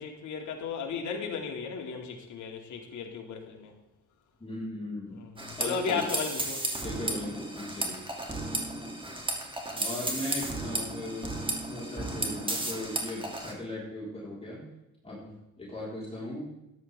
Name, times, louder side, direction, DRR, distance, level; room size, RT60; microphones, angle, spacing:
voice 1, 0.0-3.7 5.2-6.7, left 6 dB, 75° left, 2 dB, 2.6 m, -35 dB
voice 2, 4.4-5.2 5.5-6.1 6.8-8.1 9.7-11.3 11.6-14.6 15.0-16.5, left 1 dB, 20° left, -6 dB, 4.6 m, -38 dB
sound 1, 5.4-13.5, right 2 dB, 15° right, 2.8 m, -34 dB
14.0 x 10.5 x 3.6 m, 0.95 s
cardioid pair, 90°, 30 cm